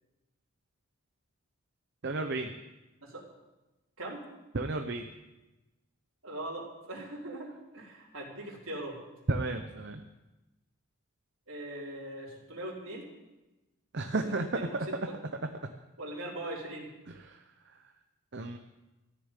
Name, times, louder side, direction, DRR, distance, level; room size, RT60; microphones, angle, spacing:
voice 1, 2.0-2.5 4.5-5.0 9.3-10.0 13.9-14.9 17.1-17.4 18.3-18.6, right 2 dB, 50° right, 6 dB, 0.7 m, -32 dB
voice 2, 6.2-7.5 7.7-9.0 11.5-13.1 14.1-15.2 16.0-16.9, right 1 dB, 70° right, -5 dB, 3.9 m, -41 dB
14.0 x 6.9 x 9.8 m, 1.1 s
head